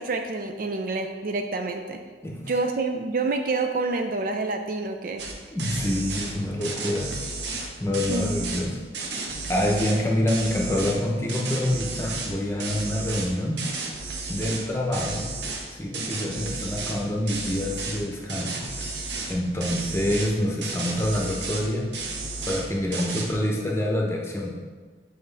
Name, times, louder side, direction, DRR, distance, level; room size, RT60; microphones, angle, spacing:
voice 1, 0.0-2.0 2.5-5.2 8.1-8.4, right 3 dB, 50° right, 5 dB, 0.4 m, -28 dB
voice 2, 2.2-2.6 5.5-7.1 7.8-8.8 9.5-13.6 14.3-15.3 15.7-18.7 19.3-21.9 22.5-24.5, left 1 dB, 15° left, -1 dB, 0.9 m, -26 dB
sound 1, 5.2-5.3 5.6-6.3 6.6-8.6 8.9-10.0 10.3-11.0 11.3-12.3 12.6-14.6 14.9-15.6 15.9-17.0 17.3-18.0 18.3-19.3 19.6-20.3 20.6-21.7 21.9-22.7 22.9-23.3, right 3 dB, 70° right, 0.9 m, -33 dB
7.7 x 5.1 x 3.4 m, 1.4 s
head